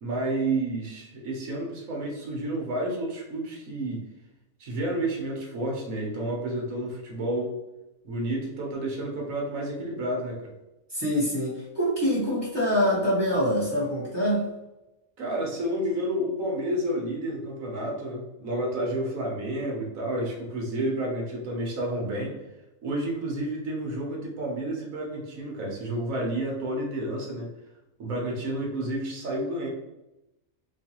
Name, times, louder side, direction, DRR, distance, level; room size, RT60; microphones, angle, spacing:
voice 1, 0.0-4.0 4.6-7.6 8.0-10.5 15.2-22.3 22.8-27.5 28.0-29.7, right 1 dB, 70° right, -1 dB, 1.4 m, -30 dB
voice 2, 10.9-14.4, equal, 20° right, -8 dB, 1.5 m, -25 dB
4.4 x 2.4 x 2.9 m, 0.97 s
omnidirectional pair, 1.5 m